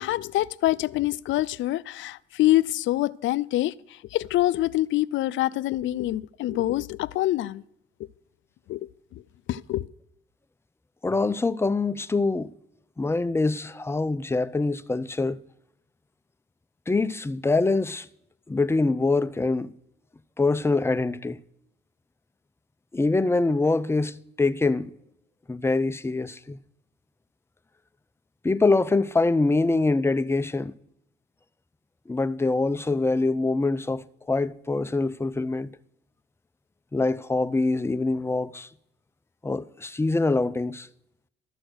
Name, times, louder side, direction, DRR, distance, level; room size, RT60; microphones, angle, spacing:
voice 1, 0.0-7.6 8.0-8.1 8.7-9.2 9.5-9.9, left 15 dB, 75° left, 0.4 m, -26 dB
voice 2, 11.0-12.5 13.0-15.4 16.9-18.1 18.5-19.7 20.4-21.4 22.9-24.9 25.5-26.6 28.4-30.7 32.1-35.7 36.9-38.7 39.4-40.9, left 3 dB, 10° left, 0.5 m, -24 dB
12.5 x 6.5 x 6.2 m
cardioid pair, 90°, 20 cm